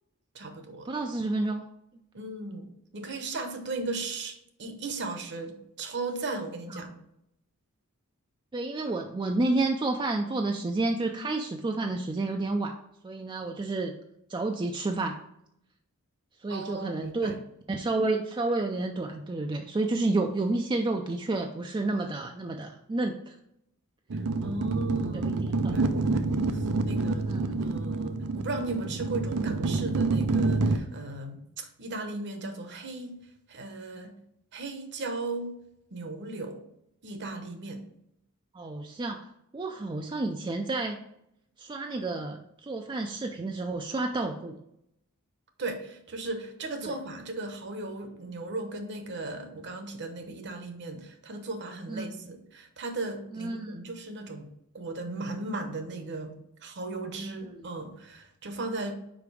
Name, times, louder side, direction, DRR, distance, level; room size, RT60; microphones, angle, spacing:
voice 1, 0.3-0.9 2.1-6.9 16.5-17.4 24.1-27.3 27.6-33.2 33.5-34.1 34.5-35.6 35.9-36.6 37.0-37.8 45.6-54.5 54.7-56.3 56.6-58.9, right 2 dB, 50° right, 7 dB, 0.9 m, -37 dB
voice 2, 0.9-1.7 6.7-7.0 8.5-12.7 13.0-13.9 14.3-15.1 16.4-17.3 17.7-23.4 25.1-25.3 25.6-25.8 27.2-27.6 38.5-41.0 41.6-44.6 46.8-46.9 51.9-52.1 53.3-53.8 57.3-57.7, right 2 dB, 20° right, 3 dB, 0.3 m, -30 dB
sound 1, 24.1-30.8, right 3 dB, 85° right, 0.6 m, -27 dB
5.1 x 4.7 x 4.8 m, 0.78 s
head